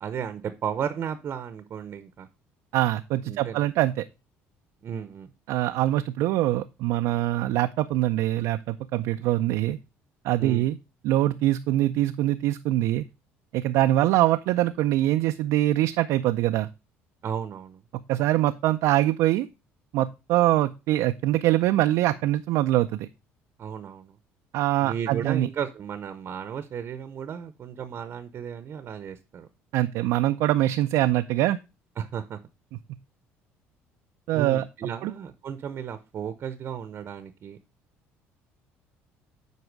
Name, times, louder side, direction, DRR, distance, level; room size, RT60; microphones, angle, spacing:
voice 1, 0.0-2.3 3.3-3.7 4.8-5.3 10.4-10.7 17.2-17.8 23.6-24.2 24.8-29.5 32.0-32.4 34.3-37.6, right 8 dB, 45° right, 11 dB, 0.8 m, -34 dB
voice 2, 2.7-4.0 5.5-9.8 10.2-10.8 11.0-13.0 13.5-16.7 18.1-19.5 19.9-23.1 24.5-25.5 29.7-31.6 34.3-34.6 35.0-35.1, right 15 dB, 75° right, 8 dB, 0.4 m, -23 dB
8.1 x 4.7 x 4.6 m, 0.28 s
cardioid pair, 100°, 5 cm